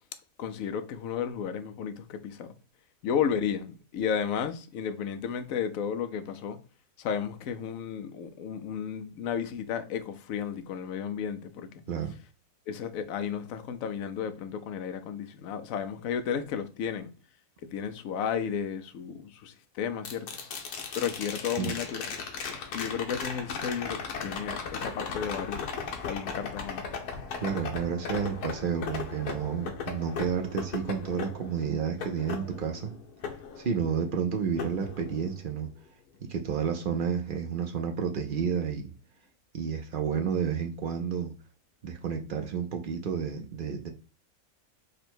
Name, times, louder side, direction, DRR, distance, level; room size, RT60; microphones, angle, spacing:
voice 1, 0.4-2.5 3.0-6.6 7.0-11.7 12.7-17.1 17.7-20.3 20.9-22.2 22.7-25.6 26.0-26.8, left 7 dB, 70° left, 1.0 m, -33 dB
sound 1, 20.0-34.1 34.6-35.6 37.9-38.0, left 5 dB, 85° left, 1.4 m, -37 dB
voice 2, 27.4-32.9 33.6-35.7 36.2-38.9 39.5-41.3 41.8-43.9, right 7 dB, 70° right, 0.5 m, -31 dB
5.1 x 2.2 x 4.4 m
omnidirectional pair, 1.6 m